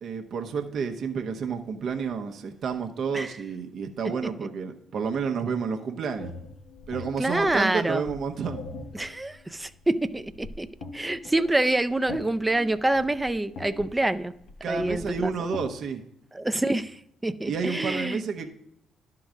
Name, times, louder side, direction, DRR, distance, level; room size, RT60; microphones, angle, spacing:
voice 1, 0.0-6.3 6.9-8.6 14.6-16.0 17.5-18.5, right 5 dB, 60° right, 0.9 m, -30 dB
sound 1, 6.2-15.8, left 3 dB, 70° left, 1.1 m, -42 dB
voice 2, 7.2-8.0 8.9-10.7 10.9-14.3 14.7-15.3 16.3-18.2, right 2 dB, 15° right, 0.5 m, -26 dB
11.5 x 3.9 x 6.2 m
hypercardioid pair, 60°, 0 cm